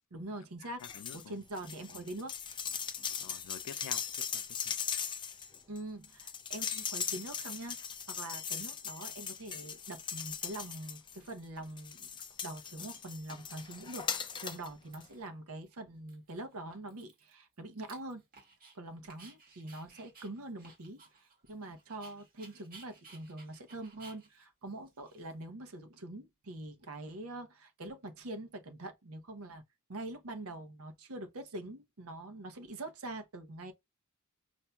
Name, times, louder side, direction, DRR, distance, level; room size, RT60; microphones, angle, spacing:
voice 1, 0.1-0.8 1.1-2.3 5.7-7.8 8.1-12.1 12.4-18.2 18.7-29.6 29.9-33.7, right 2 dB, 70° right, 0.7 m, -44 dB
voice 2, 0.8-1.4 1.9-2.0 3.2-4.7, left 8 dB, 90° left, 0.3 m, -49 dB
sound 1, 0.8-1.2 1.5-11.3 11.8-14.7 15.0-15.1, left 7 dB, 20° left, 0.4 m, -39 dB
Dog, 10.4-10.5 11.1-11.6 11.9-12.7 13.0-13.1 13.3-14.4 14.6-15.3 15.7-15.8 16.1-18.8 19.1-25.7, right 4 dB, 40° right, 1.8 m, -58 dB
5.6 x 2.6 x 2.2 m
head